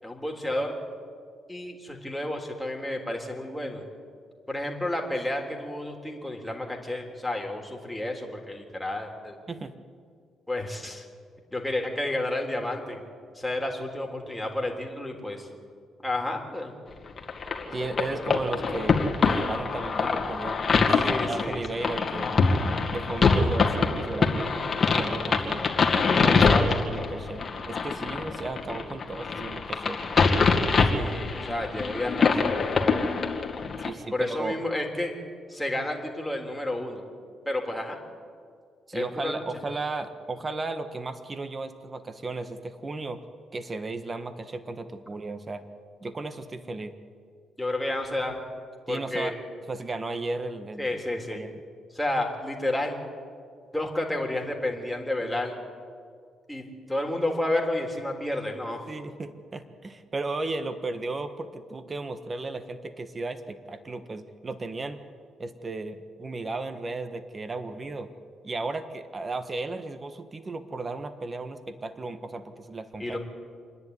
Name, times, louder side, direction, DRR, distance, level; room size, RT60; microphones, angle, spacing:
voice 1, 0.0-0.7 1.5-3.8 4.5-9.4 10.5-11.0 11.5-13.0 13.3-15.5 16.0-16.7 21.0-21.6 26.3-26.8 30.9-33.1 34.1-35.1 35.5-37.0 37.4-38.0 38.9-39.4 47.6-48.3 48.9-49.4 50.8-51.4 51.9-53.0 53.7-55.5 56.5-58.9 73.0-73.2, left 1 dB, 5° left, 1 dB, 3.5 m, -31 dB
sound 1, 17.2-33.9, left 4 dB, 40° left, 2.4 m, -24 dB
voice 2, 17.7-22.3 22.9-25.6 26.2-30.0 33.8-34.6 38.9-43.2 43.5-45.6 46.0-46.9 48.9-49.4 49.7-50.9 51.3-51.6 58.9-65.0 65.4-68.1 68.4-73.2, right 3 dB, 30° right, 10 dB, 1.5 m, -35 dB
27.0 x 10.5 x 9.7 m, 2.1 s
cardioid pair, 90°, 0 cm